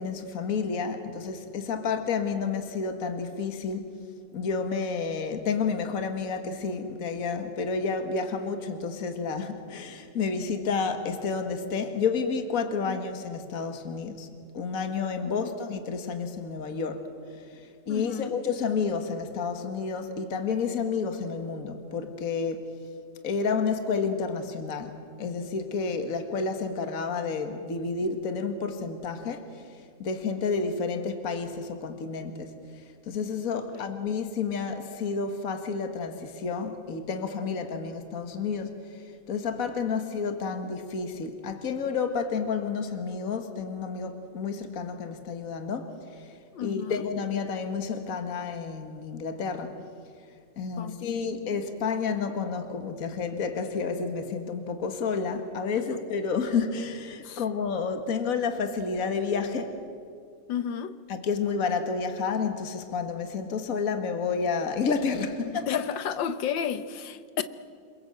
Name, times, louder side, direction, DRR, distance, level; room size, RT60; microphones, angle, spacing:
voice 1, 0.0-4.0 4.3-14.3 14.5-22.7 23.2-39.0 39.3-46.3 46.6-49.8 50.6-59.8 61.1-65.7, left 5 dB, 50° left, 7 dB, 2.0 m, -30 dB
voice 2, 17.9-18.4 33.5-33.8 40.5-40.6 46.5-47.0 50.8-51.4 55.8-56.0 57.2-57.4 60.5-61.0 65.5-67.4, left 8 dB, 85° left, 12 dB, 1.7 m, -33 dB
28.5 x 22.0 x 7.8 m, 2.2 s
omnidirectional pair, 2.0 m